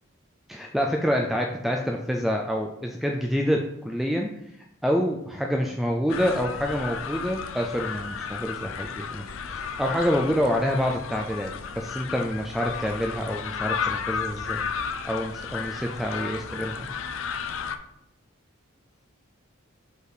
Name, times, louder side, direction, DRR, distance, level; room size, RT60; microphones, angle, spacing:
voice 1, 0.5-4.3 4.8-14.7 15.0-16.9, equal, ahead, 1 dB, 0.4 m, -27 dB
sound 1, 6.1-17.8, left 6 dB, 75° left, 0.5 m, -33 dB
5.3 x 4.1 x 4.9 m, 0.78 s
head